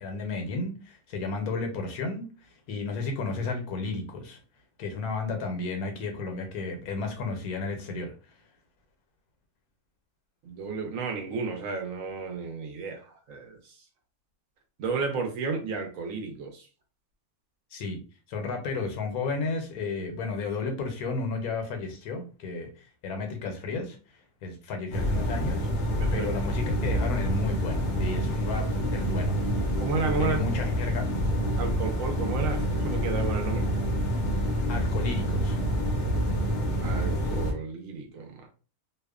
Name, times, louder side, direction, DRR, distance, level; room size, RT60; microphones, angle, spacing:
voice 1, 0.0-2.3 2.7-4.4 4.8-8.1 17.7-18.0 18.3-24.0 24.4-25.7 26.1-29.4 30.2-31.1 34.7-35.6, left 3 dB, 80° left, 1.1 m, -33 dB
voice 2, 10.4-13.6 14.8-16.7 25.9-26.3 29.8-30.4 31.6-33.7 36.8-38.5, right 4 dB, 70° right, 0.9 m, -32 dB
sound 1, 24.9-37.5, equal, 60° left, 0.7 m, -27 dB
2.7 x 2.1 x 2.3 m
omnidirectional pair, 1.5 m